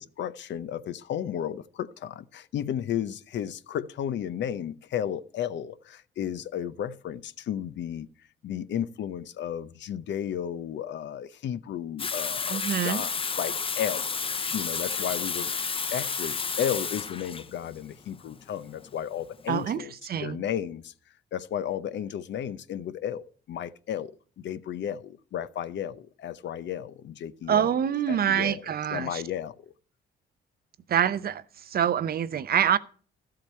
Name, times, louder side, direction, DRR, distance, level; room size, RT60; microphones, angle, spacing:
voice 1, 0.0-8.1 8.4-14.2 14.5-19.9 20.2-20.9 21.3-27.7 28.1-29.7, left 9 dB, 65° left, 0.7 m, -33 dB
Water tap faucet / Sink (filling or washing), 12.0-19.6, left 5 dB, 25° left, 0.6 m, -31 dB
voice 2, 12.5-13.0 19.5-19.8 20.1-20.4 27.5-29.2 30.9-31.4 31.7-32.8, right 9 dB, 50° right, 0.6 m, -25 dB
12.5 x 7.7 x 4.3 m
cardioid pair, 90°, 20 cm